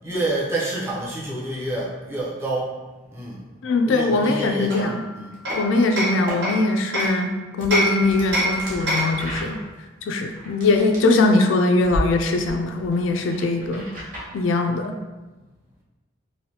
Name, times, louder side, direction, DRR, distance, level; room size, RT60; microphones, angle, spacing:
voice 1, 0.0-2.8 3.1-3.4 3.8-5.3 13.2-13.3, right 1 dB, 15° right, -5 dB, 0.5 m, -28 dB
voice 2, 3.6-5.0 5.6-9.6 10.1-13.9 14.3-15.0, left 2 dB, 75° left, 4 dB, 0.3 m, -21 dB
Hammer, 4.7-7.2 7.7-9.3, right 1 dB, 60° right, 1.2 m, -26 dB
sound 1, 5.3-5.6 6.1-6.4 7.0-7.1 7.6-11.4 11.8-12.0 12.4-14.3, equal, 40° right, 0.9 m, -33 dB
3.2 x 2.6 x 2.7 m, 1.2 s
head